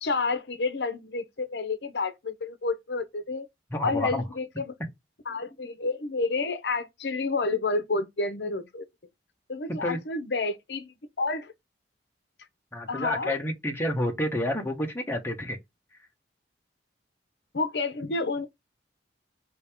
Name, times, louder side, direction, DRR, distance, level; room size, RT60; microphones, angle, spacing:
voice 1, 0.0-3.5 3.8-4.7 5.3-8.8 9.5-11.5 12.9-13.3 17.5-18.5, left 3 dB, 65° left, 0.7 m, -30 dB
voice 2, 3.7-4.3 9.8-10.0 12.7-15.6 15.9-16.1, left 1 dB, 15° left, 1.1 m, -29 dB
5.2 x 2.9 x 3.5 m
head